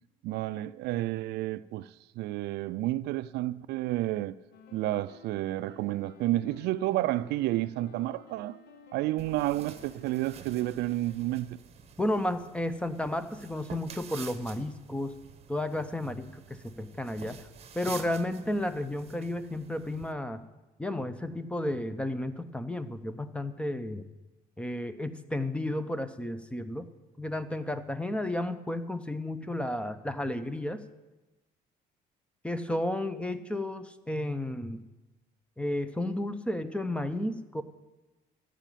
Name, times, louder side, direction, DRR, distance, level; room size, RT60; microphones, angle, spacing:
voice 1, 0.2-1.9 2.2-4.3 4.7-8.6 8.9-11.6, right 16 dB, 80° right, 0.4 m, -30 dB
sound 1, 4.5-11.2, left 5 dB, 80° left, 1.0 m, -54 dB
sound 2, 9.2-20.1, right 7 dB, 40° right, 0.9 m, -48 dB
voice 2, 12.0-15.1 15.5-17.5 17.7-20.4 20.8-24.1 24.6-26.9 27.2-30.8 32.4-34.8 35.6-37.6, left 1 dB, 5° left, 0.6 m, -32 dB
14.0 x 5.0 x 9.1 m
cardioid pair, 110°, 17 cm